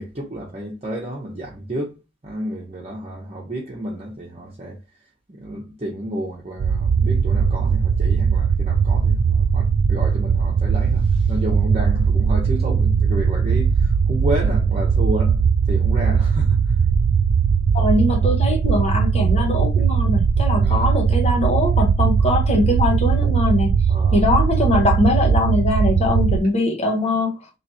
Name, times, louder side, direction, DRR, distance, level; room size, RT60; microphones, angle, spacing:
voice 1, 0.0-1.9 2.2-4.8 5.3-16.6 20.6-20.9 23.9-24.2, right 1 dB, 35° right, 0.9 m, -31 dB
sound 1, 6.6-26.4, right 6 dB, 65° right, 0.4 m, -19 dB
voice 2, 17.7-23.8 24.1-27.3, left 2 dB, 35° left, 1.1 m, -21 dB
3.2 x 3.0 x 4.2 m
head